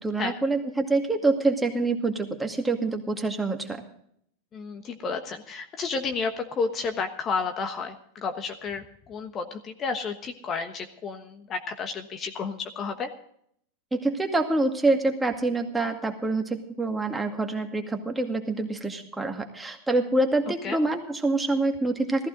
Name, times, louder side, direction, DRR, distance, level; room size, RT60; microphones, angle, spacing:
voice 1, 0.0-3.8 13.9-22.3, right 2 dB, 10° right, 3 dB, 2.1 m, -26 dB
voice 2, 4.5-13.1 20.5-20.8, left 4 dB, 35° left, 7 dB, 1.2 m, -31 dB
15.0 x 14.5 x 3.9 m, 0.68 s
hypercardioid pair, 100°, 0 cm